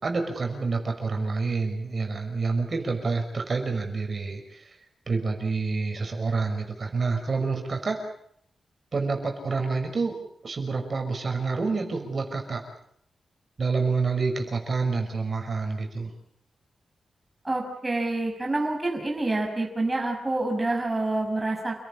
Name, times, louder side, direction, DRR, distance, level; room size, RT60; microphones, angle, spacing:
voice 1, 0.0-4.6 5.1-8.0 8.9-10.2 10.4-12.6 13.6-16.1, right 4 dB, 45° right, 3 dB, 5.9 m, -28 dB
voice 2, 17.4-21.8, right 2 dB, 20° right, 1 dB, 5.4 m, -27 dB
29.5 x 18.5 x 8.8 m, 0.70 s
wide cardioid pair, 115°, 0 cm